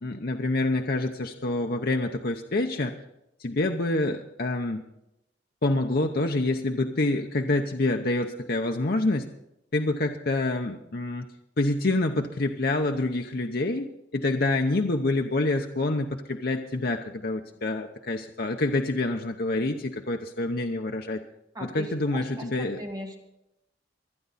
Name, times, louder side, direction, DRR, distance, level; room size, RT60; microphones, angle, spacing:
voice 1, 0.0-2.9 3.4-4.9 5.6-9.3 9.7-11.3 11.6-21.2 21.6-22.8, left 2 dB, 60° left, 4 dB, 0.8 m, -27 dB
voice 2, 21.5-23.2, equal, 20° right, 2 dB, 2.2 m, -39 dB
25.0 x 9.4 x 4.1 m, 0.84 s
head